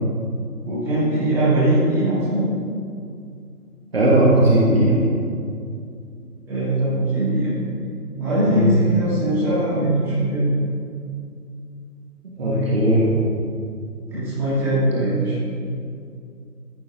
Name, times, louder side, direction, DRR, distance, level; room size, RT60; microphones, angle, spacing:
voice 1, 0.6-2.4 6.5-7.5 8.2-10.5 12.4-12.7 14.1-15.4, right 1 dB, 5° right, -13 dB, 2.8 m, -21 dB
voice 2, 3.9-5.0 8.4-8.7 12.4-13.1, right 1 dB, 40° right, -5 dB, 1.7 m, -17 dB
14.0 x 7.7 x 3.8 m, 2.4 s
figure-of-eight pair, 150°, 47 cm